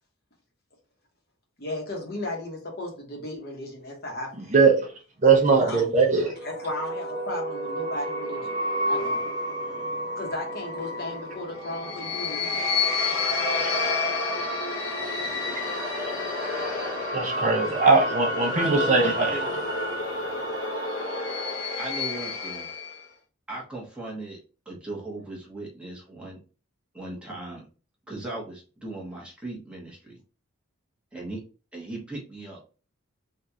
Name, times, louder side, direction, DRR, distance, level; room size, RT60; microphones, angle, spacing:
voice 1, 1.6-4.5 5.5-8.5 8.9-9.2 10.2-14.0, left 1 dB, 50° left, 1 dB, 1.0 m, -36 dB
voice 2, 4.5-4.9 5.2-6.3 13.6-13.7 17.1-19.3, right 4 dB, 35° right, 1 dB, 0.6 m, -20 dB
sound 1, 6.2-23.0, left 2 dB, 85° left, 1.0 m, -29 dB
voice 3, 18.6-19.5 21.8-22.7 23.5-24.4 24.7-26.4 26.9-27.6 28.1-30.2 31.1-31.4 31.7-32.6, right 2 dB, 5° right, -4 dB, 1.0 m, -37 dB
3.6 x 2.4 x 2.8 m, 0.35 s
head